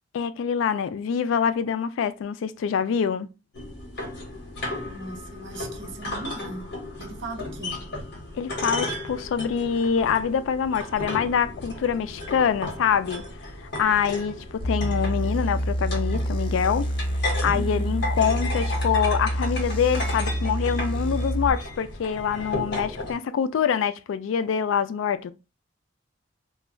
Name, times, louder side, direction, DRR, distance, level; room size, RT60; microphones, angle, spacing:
voice 1, 0.1-3.3 8.3-13.2 13.8-16.9 17.4-25.3, left 7 dB, 85° left, 0.3 m, -25 dB
sound 1, 3.5-23.1, left 2 dB, 60° left, 0.9 m, -35 dB
voice 2, 4.8-6.7 7.0-7.8 17.5-18.0, right 2 dB, 70° right, 0.7 m, -38 dB
sound 2, 14.6-21.5, equal, 30° left, 0.6 m, -27 dB
2.2 x 2.1 x 3.6 m
head